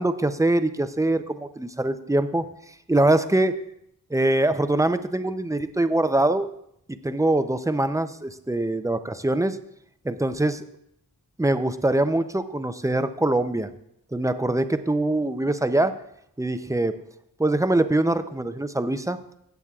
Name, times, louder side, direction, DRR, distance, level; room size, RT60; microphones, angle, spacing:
voice 1, 0.0-2.5 2.9-3.6 4.1-6.5 6.9-9.6 10.0-10.6 11.4-13.7 14.1-15.9 16.4-16.9 17.4-19.2, right 2 dB, 10° right, 10 dB, 0.5 m, -23 dB
14.5 x 8.2 x 2.4 m, 0.75 s
wide cardioid pair, 80°, 36 cm